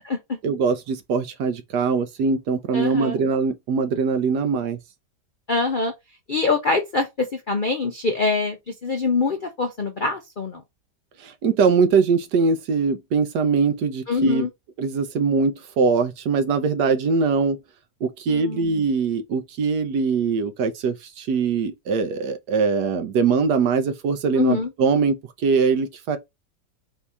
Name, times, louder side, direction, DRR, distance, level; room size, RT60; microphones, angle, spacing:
voice 1, 0.4-4.8 11.2-14.5 14.8-17.6 18.0-26.2, right 5 dB, 75° right, 1.3 m, -22 dB
voice 2, 2.7-3.2 5.5-5.9 6.3-10.6 14.1-14.5 18.3-18.7 24.4-24.7, left 3 dB, 55° left, 0.5 m, -24 dB
4.4 x 2.8 x 3.4 m
omnidirectional pair, 1.8 m